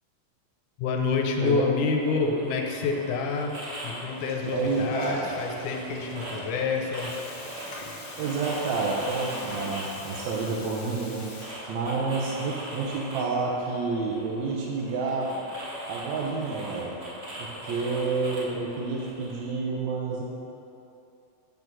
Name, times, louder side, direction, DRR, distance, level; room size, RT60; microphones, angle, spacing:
voice 1, 0.8-3.5 3.8-7.2, left 4 dB, 85° left, 2 dB, 2.2 m, -27 dB
sound 1, 2.0-19.5, right 1 dB, 90° right, 0.5 m, -40 dB
Water tap faucet / Toilet flush, 4.0-12.0, left 2 dB, 65° left, 2.2 m, -43 dB
voice 2, 4.5-5.3 8.2-11.3 11.7-15.3 15.9-17.0 17.4-20.2, right 4 dB, 75° right, -3 dB, 2.0 m, -29 dB
5.9 x 5.3 x 6.1 m, 2.6 s
omnidirectional pair, 3.5 m